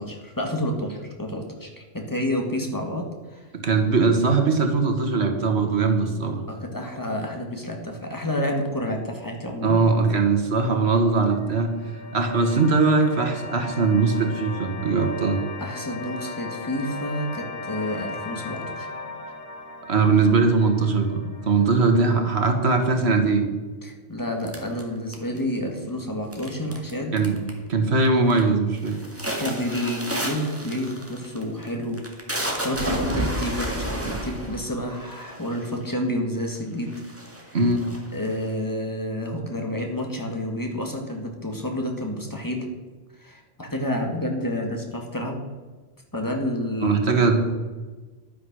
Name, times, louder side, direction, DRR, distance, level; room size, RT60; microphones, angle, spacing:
voice 1, 0.0-3.5 6.5-9.8 15.6-18.9 23.8-27.2 29.4-32.0 32.3-37.0 38.1-42.7 43.2-45.4 46.1-47.2, left 1 dB, 20° left, 2 dB, 1.9 m, -29 dB
voice 2, 3.6-6.4 9.6-11.7 12.1-15.4 19.9-23.5 27.1-27.4 27.7-29.0 37.5-37.8 46.8-47.4, right 4 dB, 80° right, 5 dB, 1.7 m, -20 dB
sound 1, 11.3-22.4, left 3 dB, 70° left, 1.6 m, -38 dB
sound 2, 24.5-25.6 26.3-26.9 27.2-27.7 28.1-28.4 28.8-35.8 36.5-36.6 36.9-38.5, right 1 dB, 15° right, 1.9 m, -31 dB
11.5 x 9.3 x 6.2 m, 1.3 s
omnidirectional pair, 1.1 m